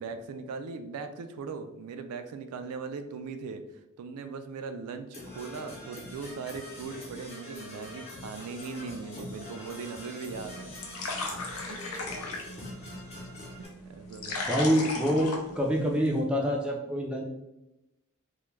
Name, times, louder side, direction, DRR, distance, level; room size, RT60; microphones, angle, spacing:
voice 1, 0.0-3.6 4.0-5.1 5.3-10.7 11.7-11.8 13.6-14.4, right 5 dB, 90° right, 9 dB, 0.3 m, -39 dB
Percussion / Brass instrument, 5.1-13.7, left 1 dB, 30° left, 0.6 m, -44 dB
sound 1, 10.3-16.2, left 2 dB, 85° left, 0.5 m, -37 dB
voice 2, 14.5-17.2, equal, 5° right, -2 dB, 0.3 m, -26 dB
2.3 x 2.1 x 3.1 m, 0.93 s
head